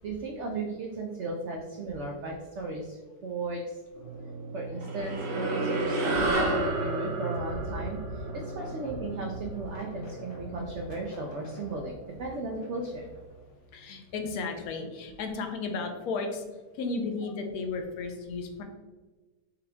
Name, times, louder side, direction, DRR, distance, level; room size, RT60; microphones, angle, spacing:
voice 1, 0.0-3.8 4.5-13.1, right 3 dB, 90° right, 1 dB, 0.6 m, -36 dB
sound 1, 3.9-13.6, right 2 dB, 50° left, 1.1 m, -39 dB
sound 2, 4.8-9.5, right 1 dB, 60° right, 1.0 m, -31 dB
voice 2, 13.6-18.6, left 4 dB, 70° left, 4 dB, 1.0 m, -34 dB
5.1 x 2.2 x 3.5 m, 1.3 s
omnidirectional pair, 1.8 m